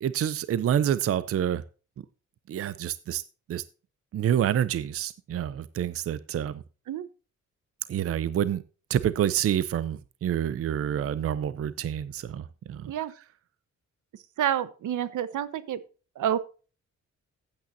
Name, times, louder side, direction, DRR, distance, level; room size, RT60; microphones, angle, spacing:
voice 1, 0.0-1.6 2.5-3.2 3.5-3.6 4.1-6.6 7.9-8.6 8.9-12.9, right 10 dB, 50° right, 16 dB, 0.6 m, -27 dB
voice 2, 14.4-15.8 16.2-16.4, right 10 dB, 80° right, 15 dB, 1.1 m, -28 dB
15.0 x 8.8 x 2.7 m, 0.35 s
wide cardioid pair, 170°, 30 cm